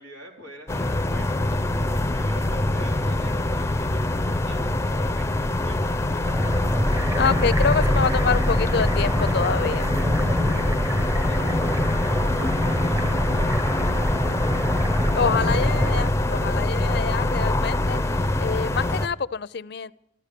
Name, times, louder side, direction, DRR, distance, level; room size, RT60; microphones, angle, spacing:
voice 1, 0.0-6.9 10.5-13.7, equal, 90° right, 1 dB, 3.9 m, -46 dB
sound 1, 0.7-19.1, left 1 dB, 15° left, 0.6 m, -24 dB
sound 2, 6.2-16.1, equal, 20° right, 1.1 m, -26 dB
voice 2, 7.2-9.9 15.1-18.0 18.4-19.9, left 5 dB, 60° left, 16 dB, 0.5 m, -26 dB
14.0 x 13.5 x 6.8 m, 0.79 s
head